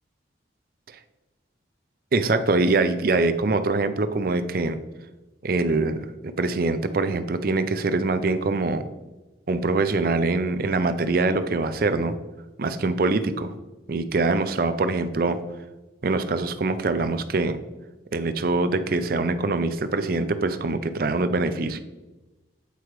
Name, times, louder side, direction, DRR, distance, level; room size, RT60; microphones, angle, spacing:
voice 1, 2.1-4.8 5.4-6.0 6.2-8.8 9.5-12.1 12.6-13.5 13.9-15.4 16.0-17.6 18.1-21.8, right 3 dB, 50° right, 10 dB, 0.5 m, -24 dB
8.2 x 4.8 x 3.1 m, 1.1 s
head